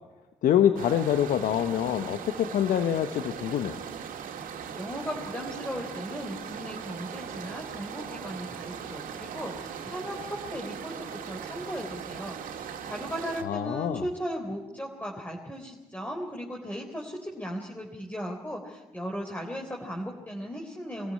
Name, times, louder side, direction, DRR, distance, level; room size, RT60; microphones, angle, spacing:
voice 1, 0.4-3.8 13.4-14.0, left 10 dB, 75° left, 9 dB, 1.0 m, -25 dB
sound 1, 0.8-13.4, right 7 dB, 75° right, 2.1 m, -39 dB
voice 2, 4.7-12.4 12.8-21.1, equal, 10° left, 0 dB, 3.9 m, -37 dB
24.0 x 14.5 x 9.8 m, 1.2 s
supercardioid pair, 50°, 14 cm